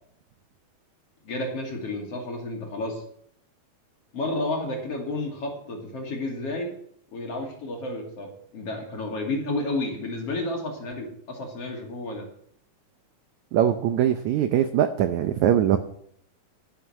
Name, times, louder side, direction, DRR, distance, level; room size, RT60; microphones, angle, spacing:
voice 1, 1.2-3.0 4.1-6.7 7.1-12.3, left 2 dB, 45° left, 1 dB, 3.3 m, -31 dB
voice 2, 13.5-15.8, right 10 dB, 80° right, 9 dB, 1.7 m, -22 dB
11.5 x 10.0 x 6.1 m, 0.67 s
omnidirectional pair, 4.2 m